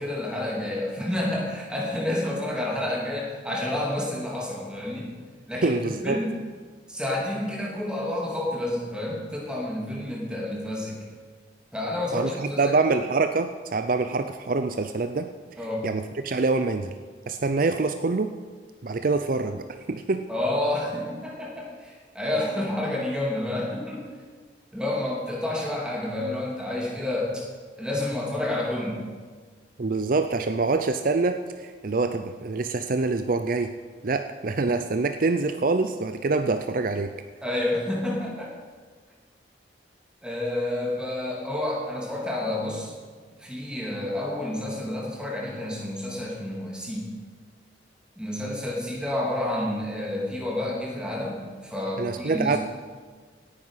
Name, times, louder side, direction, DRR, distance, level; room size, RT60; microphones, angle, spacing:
voice 1, 0.0-5.1 5.5-6.4 6.9-11.0 11.7-12.8 15.6-15.9 20.3-24.1 24.7-27.4 27.8-29.1 37.4-38.5 40.2-42.9 43.4-47.1 48.2-52.6, left 1 dB, 5° right, -3 dB, 3.1 m, -29 dB
voice 2, 5.6-6.2 12.1-15.3 15.8-16.9 17.3-18.3 18.8-20.2 29.8-33.7 34.0-37.1 52.0-52.6, right 3 dB, 50° right, 8 dB, 0.5 m, -25 dB
17.5 x 9.9 x 5.7 m, 1.5 s
head